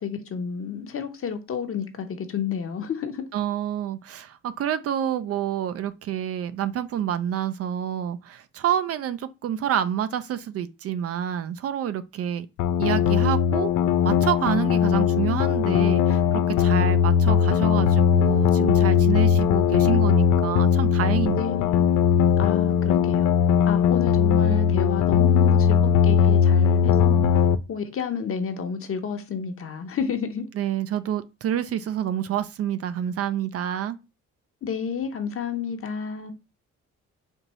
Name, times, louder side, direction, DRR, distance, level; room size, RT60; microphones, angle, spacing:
voice 1, 0.0-3.2 21.3-21.9 22.4-27.4 27.7-30.4 34.6-36.3, left 7 dB, 45° left, 0.8 m, -31 dB
voice 2, 3.3-12.5 12.8-13.7 14.0-16.2 16.5-21.4 24.5-24.6 30.6-34.0, right 10 dB, 55° right, 0.4 m, -28 dB
sound 1, 12.6-27.6, left 8 dB, 75° left, 0.5 m, -19 dB
4.4 x 2.6 x 3.0 m
cardioid pair, 90°, 30 cm